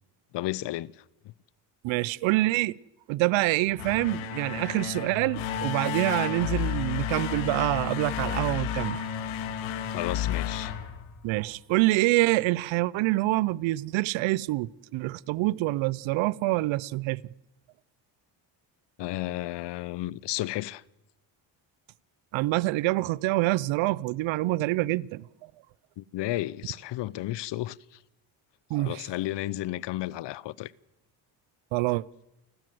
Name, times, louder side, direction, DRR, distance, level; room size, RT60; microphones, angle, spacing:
voice 1, 0.3-1.0 9.9-10.7 19.0-20.8 26.0-28.0 28.8-30.7, left 15 dB, 65° left, 0.8 m, -33 dB
voice 2, 1.8-2.8 3.1-9.0 11.2-17.2 22.3-25.3 28.7-29.1 31.7-32.0, right 19 dB, 80° right, 0.7 m, -26 dB
sound 1, 3.7-11.6, left 9 dB, 90° left, 2.1 m, -32 dB
29.5 x 12.5 x 7.8 m
cardioid pair, 85°, 46 cm